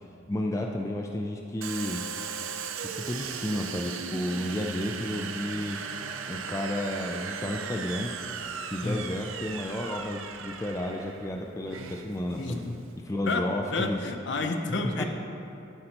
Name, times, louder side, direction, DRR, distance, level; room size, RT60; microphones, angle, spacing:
voice 1, 0.3-2.0 2.8-5.8 6.3-8.1 8.7-12.7 13.0-14.0 15.0-15.1, left 1 dB, 15° left, 1 dB, 0.3 m, -32 dB
Domestic sounds home sounds, 1.6-13.0, right 6 dB, 85° right, 0.5 m, -37 dB
voice 2, 12.4-12.8 13.2-15.0, left 3 dB, 60° left, 5 dB, 0.6 m, -30 dB
11.5 x 6.4 x 2.9 m, 2.7 s
head